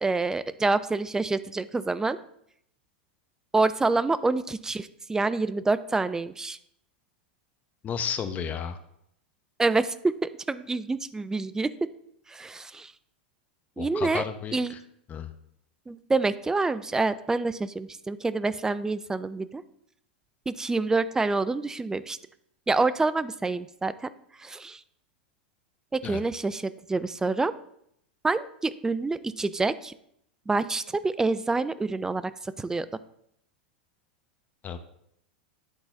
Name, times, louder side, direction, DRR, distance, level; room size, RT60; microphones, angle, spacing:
voice 1, 0.0-2.2 3.5-6.6 9.6-11.7 12.3-12.9 13.8-14.2 14.5-14.7 15.9-19.6 20.5-22.2 22.7-23.9 24.4-24.8 25.9-27.5 28.2-29.9 30.5-32.9, right 3 dB, 10° right, 14 dB, 0.4 m, -27 dB
voice 2, 7.8-8.8 13.8-14.8 15.1-15.3 26.0-26.2 34.6-34.8, left 7 dB, 30° left, 9 dB, 0.8 m, -32 dB
10.5 x 3.9 x 3.9 m, 0.72 s
hypercardioid pair, 95°, 5 cm